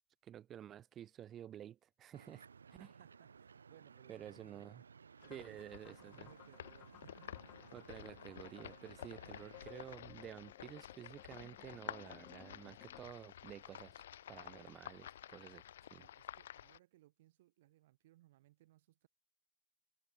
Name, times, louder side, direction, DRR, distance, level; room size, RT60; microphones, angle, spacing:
voice 1, 0.2-2.5 2.8-2.9 4.1-4.8 5.3-6.3 7.7-14.0 14.3-15.6 15.9-16.1, right 10 dB, 30° right, 3.2 m, -51 dB
sound 1, 2.1-9.9, right 6 dB, 70° right, 1.7 m, -59 dB
voice 2, 2.8-4.6 5.2-5.6 5.9-7.4 14.5-14.7 15.9-19.1, right 16 dB, 55° right, 2.4 m, -65 dB
sound 2, 5.2-16.8, left 11 dB, 60° left, 2.8 m, -52 dB
sound 3, 5.2-13.1, left 23 dB, 40° left, 2.3 m, -60 dB
figure-of-eight pair, 90°, 0 cm